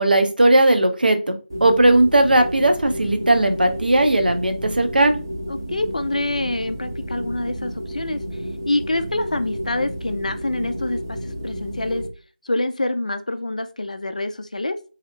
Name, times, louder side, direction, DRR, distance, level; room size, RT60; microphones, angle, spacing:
voice 1, 0.0-5.2, right 1 dB, 65° right, 6 dB, 0.6 m, -17 dB
sound 1, 1.5-12.1, equal, 25° right, 0.4 m, -31 dB
voice 2, 5.5-8.2 8.7-12.0 12.4-14.8, left 2 dB, 45° left, 10 dB, 0.3 m, -26 dB
2.7 x 2.0 x 2.6 m, 0.35 s
figure-of-eight pair, 170°, 5 cm